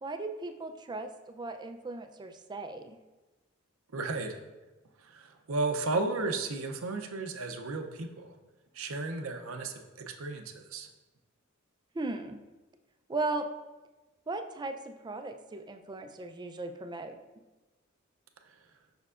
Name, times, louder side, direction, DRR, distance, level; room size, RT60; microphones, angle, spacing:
voice 1, 0.0-3.0 11.9-12.4 13.1-13.5 14.3-17.1, right 3 dB, 20° right, 6 dB, 0.4 m, -37 dB
voice 2, 3.9-4.4 5.0-8.3 8.7-10.9, right 3 dB, 75° right, 5 dB, 0.6 m, -34 dB
6.7 x 6.0 x 2.4 m, 1.1 s
head